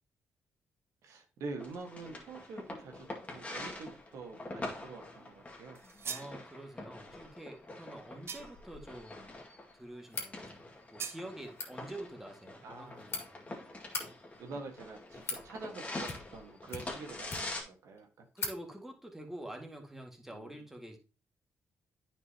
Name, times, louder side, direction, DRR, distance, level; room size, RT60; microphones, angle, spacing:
voice 1, 1.0-5.8 12.6-13.0 14.4-18.2 20.3-20.6, right 3 dB, 75° right, 3 dB, 1.6 m, -46 dB
sound 1, 1.6-17.6, left 2 dB, 25° left, 2.0 m, -45 dB
sound 2, 5.7-6.4 8.3-8.7 11.0-11.3, right 6 dB, 50° right, 0.9 m, -41 dB
voice 2, 6.0-9.4 9.7-13.5 18.3-21.0, right 1 dB, 5° right, 2 dB, 1.9 m, -47 dB
sound 3, 10.1-10.3 11.4-11.7 12.7-13.2 13.8-14.1 14.8-15.4 16.0-16.4 16.7-17.6 18.0-18.1 18.4-18.6, left 4 dB, 50° left, 2.3 m, -40 dB
9.3 x 5.3 x 2.9 m, 0.32 s
cardioid pair, 70°, 5 cm